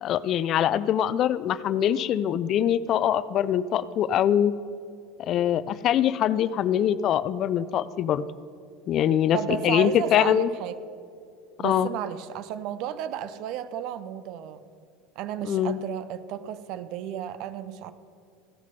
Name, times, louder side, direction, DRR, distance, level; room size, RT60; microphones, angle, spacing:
voice 1, 0.0-4.5 5.3-8.2 8.9-10.5 11.6-11.9 15.4-15.8, left 10 dB, 50° left, 16 dB, 0.4 m, -23 dB
voice 2, 9.3-10.8 11.6-14.6 15.2-17.9, right 10 dB, 60° right, 14 dB, 0.6 m, -33 dB
15.5 x 6.4 x 5.3 m, 2.4 s
supercardioid pair, 105°, 0 cm